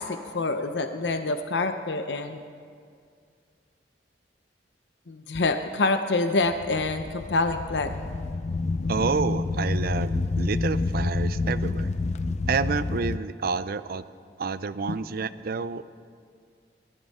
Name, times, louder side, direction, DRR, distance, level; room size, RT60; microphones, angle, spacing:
voice 1, 0.0-2.4 5.1-7.9, left 3 dB, 75° left, 8 dB, 0.7 m, -26 dB
sound 1, 6.4-13.2, left 3 dB, 40° left, 0.4 m, -28 dB
voice 2, 8.9-11.9 12.5-14.0 14.4-15.8, right 5 dB, 55° right, 15 dB, 0.5 m, -29 dB
20.0 x 14.0 x 4.2 m, 2.2 s
head